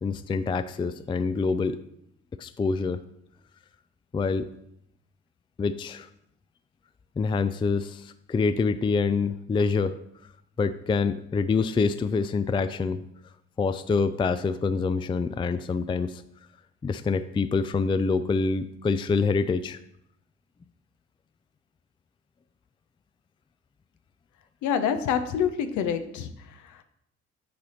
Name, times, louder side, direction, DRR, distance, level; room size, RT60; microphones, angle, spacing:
voice 1, 0.0-1.8 2.4-3.0 4.1-4.5 5.6-6.1 7.2-10.0 10.6-13.0 13.6-16.2 16.8-19.8, left 4 dB, 15° left, 13 dB, 0.4 m, -26 dB
voice 2, 24.6-26.3, left 8 dB, 75° left, 9 dB, 0.8 m, -26 dB
9.5 x 4.2 x 4.1 m, 0.76 s
hypercardioid pair, 55°, 30 cm